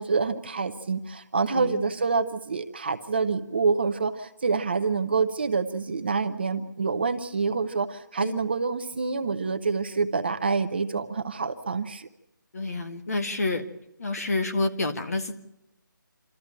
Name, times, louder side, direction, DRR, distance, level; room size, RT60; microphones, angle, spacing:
voice 1, 0.0-12.1, right 4 dB, 30° right, 7 dB, 0.7 m, -27 dB
voice 2, 1.5-1.9 8.2-8.4 12.5-13.6 14.0-15.3, left 2 dB, 45° left, 7 dB, 1.8 m, -28 dB
27.5 x 13.5 x 8.8 m, 0.90 s
hypercardioid pair, 175°, 11 cm